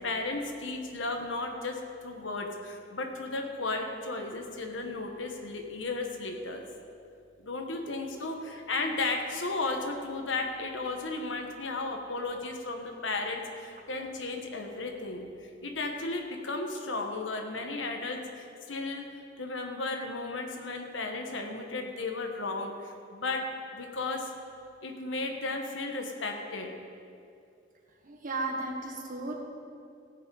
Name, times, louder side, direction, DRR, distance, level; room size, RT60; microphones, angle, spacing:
voice 1, 0.0-6.6 7.4-15.3 15.6-19.0 19.4-23.4 23.7-24.3 24.8-26.7, left 3 dB, 85° left, 3 dB, 1.4 m, -34 dB
voice 2, 28.0-29.4, right 2 dB, 45° right, 2 dB, 1.5 m, -34 dB
16.0 x 8.4 x 4.8 m, 2.5 s
head